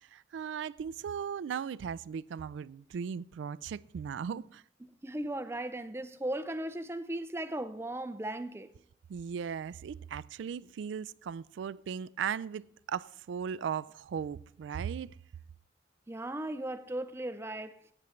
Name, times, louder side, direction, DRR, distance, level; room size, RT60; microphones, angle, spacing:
voice 1, 0.1-4.6 9.1-15.1, right 7 dB, 85° right, 0.3 m, -37 dB
voice 2, 4.8-8.7 16.1-17.8, right 1 dB, 15° right, 0.4 m, -37 dB
15.0 x 8.9 x 3.1 m
head